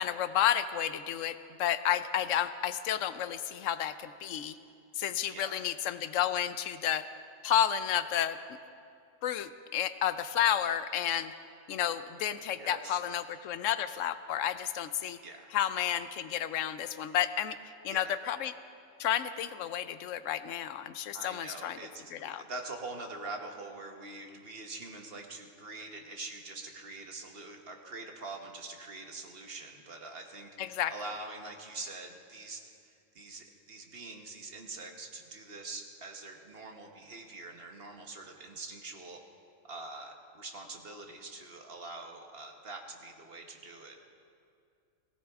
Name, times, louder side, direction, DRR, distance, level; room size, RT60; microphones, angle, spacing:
voice 1, 0.0-4.5 5.0-7.1 7.4-8.4 9.2-11.3 11.7-15.2 15.5-17.6 17.8-18.5 19.0-21.8 22.1-22.4 30.6-30.9, left 10 dB, 80° left, 13 dB, 0.9 m, -31 dB
voice 2, 5.3-5.6 12.6-13.0 15.2-15.6 17.9-18.2 21.1-39.2 39.6-44.1, right 3 dB, 50° right, 3 dB, 1.4 m, -44 dB
18.0 x 17.0 x 3.6 m, 2.4 s
omnidirectional pair, 1.3 m